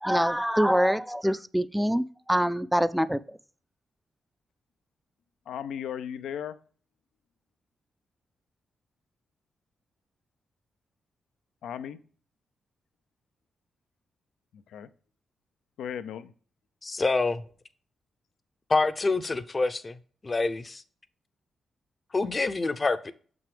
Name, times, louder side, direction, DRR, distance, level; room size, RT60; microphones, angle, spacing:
voice 1, 0.0-3.4, equal, 5° right, 0.5 m, -25 dB
voice 2, 5.5-6.6 11.6-12.0 14.5-14.9 15.8-16.3, left 9 dB, 80° left, 0.5 m, -36 dB
voice 3, 16.8-17.4 18.7-19.9 20.2-20.8 22.1-23.1, left 3 dB, 35° left, 0.7 m, -26 dB
6.8 x 6.0 x 3.3 m
supercardioid pair, 45°, 0 cm